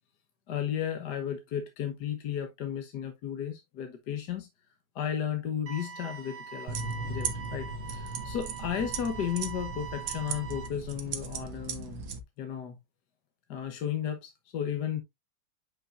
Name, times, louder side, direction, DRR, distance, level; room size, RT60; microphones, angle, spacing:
voice 1, 0.5-4.5 4.9-6.8 7.1-12.0 12.4-12.8 13.5-15.0, left 9 dB, 60° left, 1.5 m, -34 dB
sound 1, 5.7-10.7, right 6 dB, 55° right, 1.4 m, -43 dB
sound 2, 6.7-12.2, right 4 dB, 70° right, 1.8 m, -37 dB
9.0 x 5.4 x 2.5 m
omnidirectional pair, 2.3 m